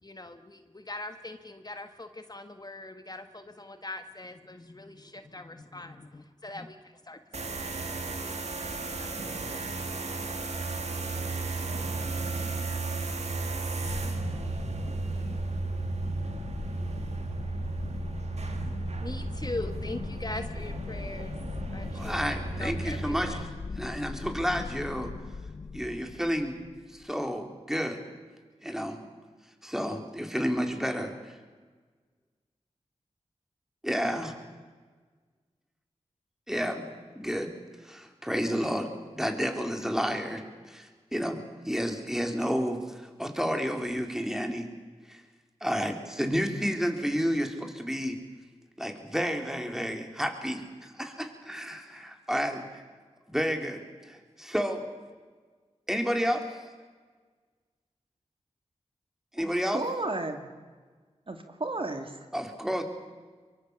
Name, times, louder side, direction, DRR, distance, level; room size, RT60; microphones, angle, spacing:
voice 1, 0.0-10.1 18.8-23.4 23.7-23.9, left 2 dB, 35° left, 8 dB, 1.5 m, -42 dB
sound 1, 7.3-23.4, right 3 dB, 65° right, 2.2 m, -34 dB
sound 2, 13.8-27.1, left 4 dB, 50° left, 0.8 m, -39 dB
voice 2, 21.9-23.4 23.8-25.1 25.7-26.6 26.9-28.0 28.6-29.0 29.6-31.4 33.8-34.3 36.5-36.9 37.2-37.5 37.8-44.7 45.1-45.2 45.6-48.2 48.8-52.7 53.3-54.8 55.9-56.6 59.3-59.8 62.3-62.8, equal, 5° right, 4 dB, 3.9 m, -31 dB
voice 3, 59.4-60.5 61.3-62.3, right 2 dB, 50° right, 5 dB, 2.5 m, -34 dB
23.5 x 23.5 x 7.1 m, 1.4 s
cardioid pair, 45°, 12 cm